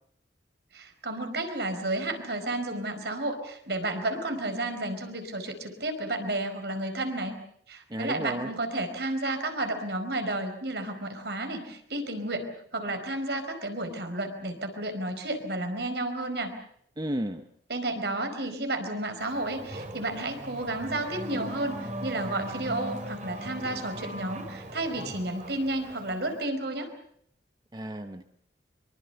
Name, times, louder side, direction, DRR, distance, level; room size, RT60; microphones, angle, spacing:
voice 1, 0.7-7.3 7.7-16.5 17.7-26.9, right 2 dB, 65° right, 7 dB, 4.8 m, -32 dB
voice 2, 7.9-8.5 17.0-17.4 27.7-28.2, equal, 25° right, 8 dB, 0.9 m, -33 dB
Race car auto racing / Accelerating revving vroom, 19.2-26.4, right 1 dB, 40° right, 3.3 m, -39 dB
25.0 x 23.5 x 6.8 m, 0.68 s
head